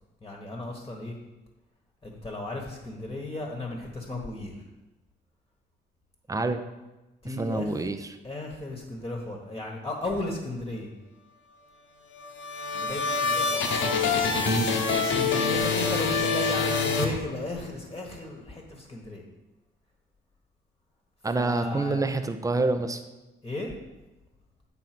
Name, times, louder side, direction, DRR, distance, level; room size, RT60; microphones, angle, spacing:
voice 1, 0.2-1.2 2.0-4.6 7.2-7.8 8.2-10.9 12.7-13.7 15.0-19.2 21.3-22.1 23.4-23.7, left 2 dB, 20° left, 0 dB, 1.3 m, -35 dB
voice 2, 6.3-6.6 7.4-8.0 14.4-14.8 21.2-23.0, right 3 dB, 15° right, 9 dB, 0.6 m, -27 dB
sound 1, 12.1-17.7, left 4 dB, 75° left, 1.1 m, -26 dB
7.8 x 3.9 x 5.9 m, 1.1 s
cardioid pair, 90°, 20 cm